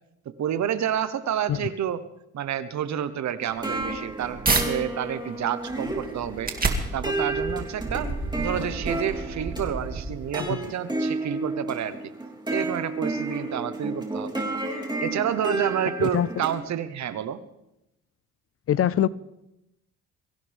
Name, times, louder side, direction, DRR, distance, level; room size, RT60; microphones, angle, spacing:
voice 1, 0.2-2.0 2.3-6.5 6.9-8.1 8.4-12.1 12.5-14.4 15.0-17.4, right 9 dB, 65° right, 1.1 m, -29 dB
sound 1, 3.4-16.6, right 2 dB, 15° right, 3.4 m, -32 dB
sound 2, 3.7-4.7 5.2-10.5, right 3 dB, 30° right, 2.4 m, -30 dB
voice 2, 16.0-16.4 18.7-19.1, left 10 dB, 50° left, 0.5 m, -24 dB
23.5 x 16.0 x 3.5 m
cardioid pair, 90°, 30 cm